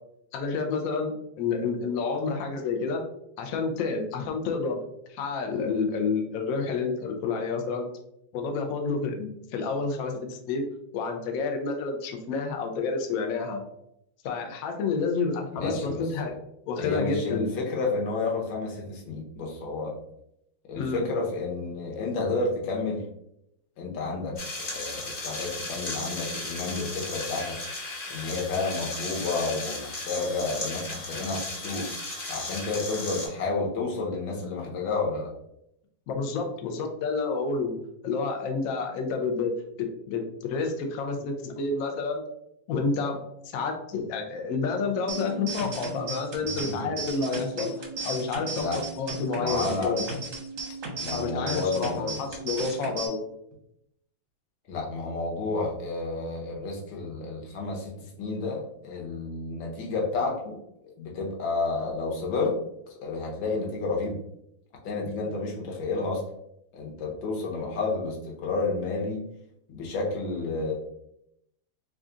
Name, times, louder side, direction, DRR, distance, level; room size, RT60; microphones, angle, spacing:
voice 1, 0.3-3.0 3.4-7.9 8.3-10.6 10.9-13.6 14.2-16.4 16.7-17.5 20.8-21.1 36.1-37.8 38.0-39.5 40.1-40.2 40.5-42.3 42.7-43.2 43.4-48.6 49.0-50.0 51.1-53.2, left 4 dB, 85° left, 4 dB, 0.7 m, -29 dB
voice 2, 15.5-16.3 16.8-19.9 20.7-23.0 23.8-24.4 24.7-27.6 28.1-31.9 32.3-35.3 46.6-46.9 48.5-48.8 49.4-50.0 51.0-52.2 54.7-60.6 60.8-62.6 63.0-64.2 64.8-66.2 66.7-69.2 69.7-70.7, left 3 dB, 70° left, -1 dB, 1.6 m, -30 dB
sound 1, 24.4-33.3, left 2 dB, 35° left, 1.1 m, -35 dB
sound 2, 45.1-53.1, right 4 dB, 60° right, 0.8 m, -36 dB
3.6 x 2.4 x 3.7 m, 0.78 s
omnidirectional pair, 2.2 m